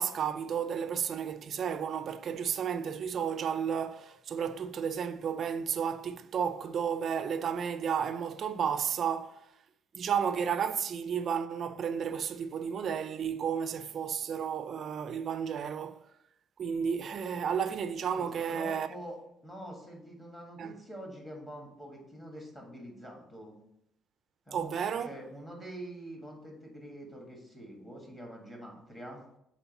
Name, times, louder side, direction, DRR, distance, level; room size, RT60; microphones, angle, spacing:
voice 1, 0.0-9.5 9.9-16.0 16.6-18.9 20.6-20.7 24.5-25.1, right 7 dB, 40° right, 0.4 m, -32 dB
voice 2, 18.1-23.6 24.5-24.7 25.0-29.2, right 1 dB, 15° left, 1.6 m, -45 dB
6.9 x 4.3 x 4.0 m
cardioid pair, 150°, 0 cm